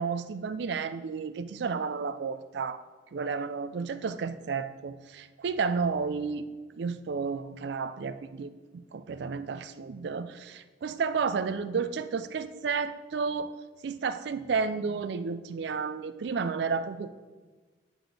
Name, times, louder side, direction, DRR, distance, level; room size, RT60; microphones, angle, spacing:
voice 1, 0.0-2.8 3.1-6.5 6.7-13.5 13.8-17.1, right 5 dB, 65° right, 12 dB, 0.3 m, -32 dB
9.4 x 4.0 x 3.4 m, 1.3 s
head